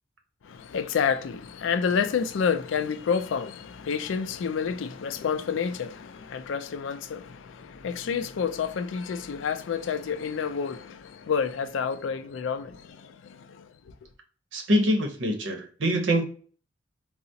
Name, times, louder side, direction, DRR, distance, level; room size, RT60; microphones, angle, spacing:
voice 1, 0.4-13.7, left 6 dB, 85° left, 0.4 m, -29 dB
voice 2, 14.5-16.2, equal, 85° right, 0.8 m, -24 dB
4.7 x 2.0 x 2.6 m
head